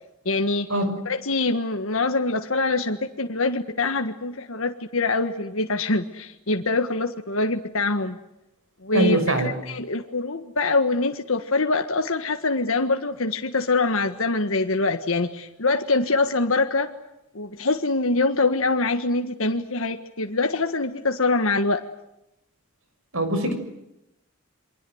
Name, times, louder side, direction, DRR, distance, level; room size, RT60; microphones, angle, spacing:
voice 1, 0.2-0.7 1.0-8.2 8.8-16.9 17.3-21.8, left 3 dB, 65° left, 5 dB, 1.6 m, -24 dB
voice 2, 8.9-9.5 23.1-23.5, right 1 dB, 70° right, 8 dB, 6.5 m, -22 dB
28.0 x 24.0 x 8.0 m, 0.88 s
head